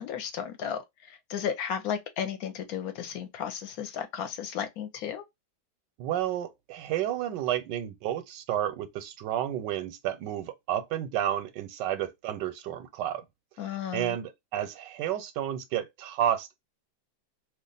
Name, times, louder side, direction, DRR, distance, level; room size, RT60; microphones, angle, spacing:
voice 1, 0.0-5.2 13.6-14.2, left 8 dB, 65° left, 1.0 m, -34 dB
voice 2, 6.0-13.2 13.9-16.6, right 11 dB, 85° right, 1.2 m, -31 dB
2.8 x 2.4 x 3.8 m
omnidirectional pair, 1.8 m